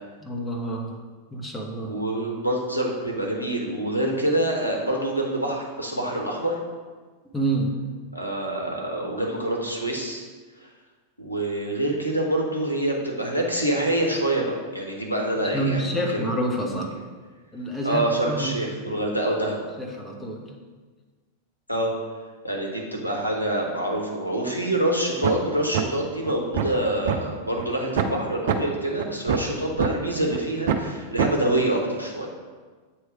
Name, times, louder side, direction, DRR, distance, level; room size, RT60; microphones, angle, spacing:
voice 1, 0.2-1.0 1.3-1.9 7.3-7.7 15.4-16.9 17.5-18.6 18.9-19.0 19.8-20.5, right 1 dB, 10° left, 0 dB, 1.0 m, -28 dB
voice 2, 1.8-6.6 8.1-10.2 10.6-10.7 11.2-16.2 17.8-19.7 21.7-21.9 22.4-32.3, right 1 dB, 90° left, -1 dB, 0.9 m, -26 dB
sound 1, 25.2-25.4 25.7-25.8 26.3-27.2 27.6-27.7 28.0-28.1 28.5-28.6 29.0-29.9 30.3-30.4 30.7-30.9 31.2-31.3, right 8 dB, 55° right, 0.5 m, -24 dB
8.2 x 3.1 x 4.7 m, 1.4 s
figure-of-eight pair, 90°, 0 cm